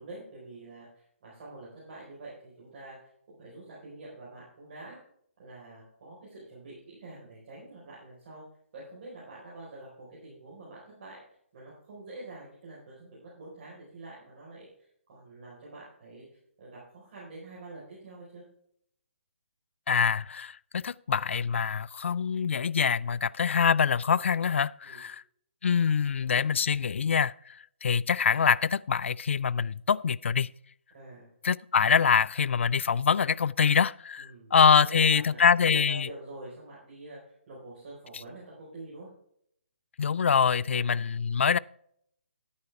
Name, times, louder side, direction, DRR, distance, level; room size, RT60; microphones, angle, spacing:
voice 1, 0.0-3.1 3.4-5.0 5.4-8.4 8.7-11.2 11.5-16.3 16.6-18.4 24.8-25.0 30.9-31.3 34.2-34.5 34.8-39.1 40.6-41.0, right 2 dB, 40° right, 4.5 m, -46 dB
voice 2, 19.9-25.2 25.6-30.5 31.4-36.1 40.0-41.6, left 6 dB, 70° left, 0.3 m, -25 dB
11.0 x 9.7 x 3.4 m
hypercardioid pair, 160°, 7 cm